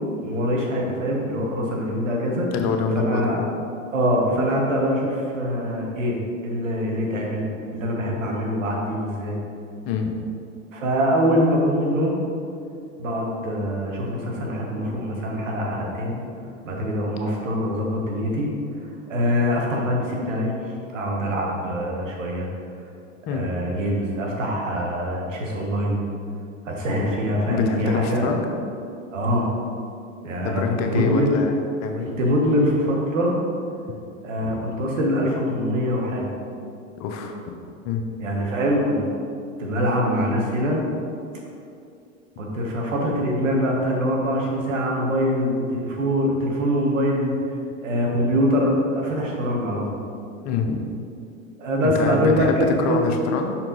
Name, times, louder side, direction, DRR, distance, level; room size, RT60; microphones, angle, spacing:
voice 1, 0.2-2.5 2.9-3.4 3.9-7.5 7.7-9.4 10.7-12.2 13.0-16.2 16.6-18.5 19.1-20.5 20.9-22.5 23.3-26.0 26.6-28.3 29.1-29.5 30.2-31.3 31.9-33.3 34.2-36.2 38.2-39.1 39.6-40.8 42.4-47.3 47.8-50.0 51.6-53.0, equal, 85° right, -1 dB, 1.4 m, -23 dB
voice 2, 2.5-3.5 9.9-10.1 23.3-23.5 27.5-28.5 30.4-31.6 31.8-32.1 37.0-37.4 37.8-38.0 50.4-50.8 51.8-53.6, left 5 dB, 45° left, 4 dB, 0.8 m, -25 dB
5.8 x 4.4 x 3.9 m, 2.5 s
hypercardioid pair, 95°, 37 cm